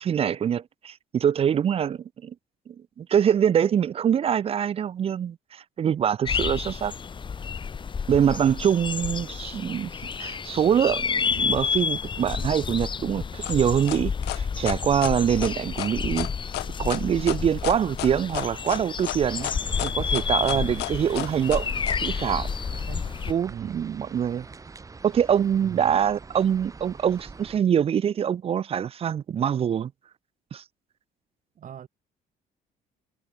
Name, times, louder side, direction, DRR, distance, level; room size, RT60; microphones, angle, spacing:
voice 1, 0.0-2.3 2.7-6.9 8.1-9.9 10.2-16.3 16.8-19.5 19.8-21.7 22.0-22.5 23.3-24.5 25.0-29.9 30.5-30.6, right 8 dB, 35° right, 0.5 m, -24 dB
sound 1, 6.2-23.3, left 6 dB, 30° left, 1.0 m, -30 dB
sound 2, 13.4-22.0, left 18 dB, 80° left, 1.3 m, -33 dB
sound 3, 19.3-27.6, right 4 dB, 20° right, 1.0 m, -44 dB
voice 2, 20.4-20.8 22.7-23.1 23.5-23.9 25.6-25.9 31.5-31.9, right 9 dB, 50° right, 4.7 m, -40 dB
cardioid pair, 110°, 17 cm